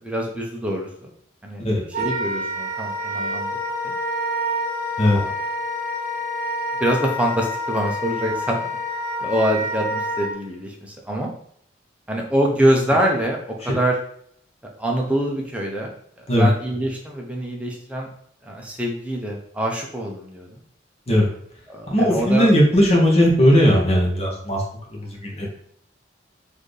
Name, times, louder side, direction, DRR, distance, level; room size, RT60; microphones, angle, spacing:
voice 1, 0.0-1.1 1.4-1.6 2.0-3.6 3.8-3.9 5.1-5.3 6.8-8.6 9.2-11.3 12.1-14.0 14.8-15.9 16.3-18.1 18.4-20.6 21.7-22.5, right 1 dB, 5° right, -1 dB, 0.6 m, -24 dB
Wind instrument woodwind instrument, 1.9-10.3, equal, 40° right, 0.8 m, -27 dB
voice 2, 21.9-24.6 24.9-25.5, equal, 35° left, -1 dB, 0.9 m, -17 dB
4.1 x 2.7 x 3.2 m, 0.65 s
head